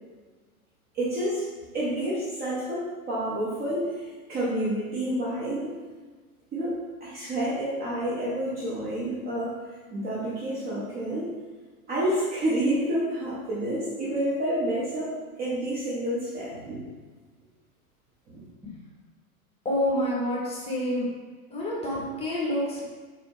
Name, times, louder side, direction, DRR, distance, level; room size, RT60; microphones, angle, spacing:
voice 1, 0.9-1.5 1.7-5.8 6.5-9.6 9.9-11.3 11.9-15.1 15.4-16.9 18.3-18.4, right 1 dB, 20° right, -7 dB, 0.8 m, -29 dB
voice 2, 19.6-21.1 21.5-22.8, left 1 dB, 15° left, -5 dB, 1.3 m, -28 dB
4.2 x 3.3 x 3.2 m, 1.4 s
figure-of-eight pair, 100°, 44 cm